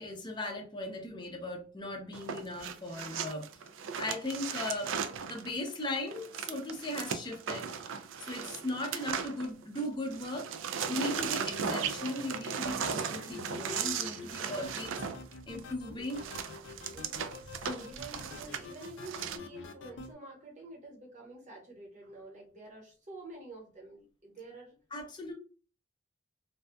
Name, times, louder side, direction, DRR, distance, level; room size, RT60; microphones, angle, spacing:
voice 1, 0.0-3.5 4.0-4.9 5.2-7.7 8.2-10.5 10.9-14.9 15.5-16.2 17.6-17.9 24.9-25.3, left 1 dB, 25° left, 2 dB, 0.6 m, -38 dB
sound 1, 2.1-9.9 10.1-19.4, right 7 dB, 75° right, 0.3 m, -37 dB
sound 2, 10.8-20.1, left 4 dB, 70° left, 0.4 m, -47 dB
voice 2, 14.3-14.8 16.9-17.3 17.8-24.8, right 2 dB, 40° right, -1 dB, 0.9 m, -49 dB
2.6 x 2.2 x 2.2 m, 0.36 s
head